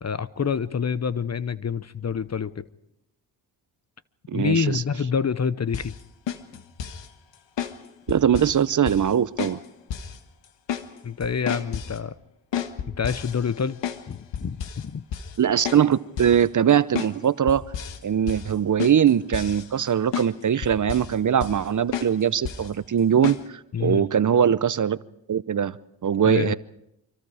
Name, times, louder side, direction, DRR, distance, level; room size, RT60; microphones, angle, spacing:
voice 1, 0.0-2.6 4.3-5.9 11.0-12.1 12.9-13.8 14.1-15.0 23.7-24.1 26.2-26.6, left 6 dB, 35° left, 0.9 m, -27 dB
voice 2, 4.3-4.8 8.1-9.6 15.4-17.6 18.0-25.0 25.3-25.8 26.0-26.6, right 8 dB, 45° right, 0.8 m, -21 dB
sound 1, 5.7-6.0 6.3-7.1 7.6-7.8 8.1-8.6 8.9-9.1 9.4-9.6 9.9-10.2 10.4-10.9 11.2-12.0 12.5-14.1 14.3-14.8 15.1-15.4 15.7-15.9 16.2-16.4 17.0-17.2 17.5-18.0 18.3-18.5 18.8-19.9 20.1-20.3 20.6-21.2 21.4-21.7 21.9-22.1 22.5-22.7 23.2-23.4, left 8 dB, 75° left, 1.6 m, -31 dB
26.0 x 24.5 x 5.0 m
supercardioid pair, 55°, 43 cm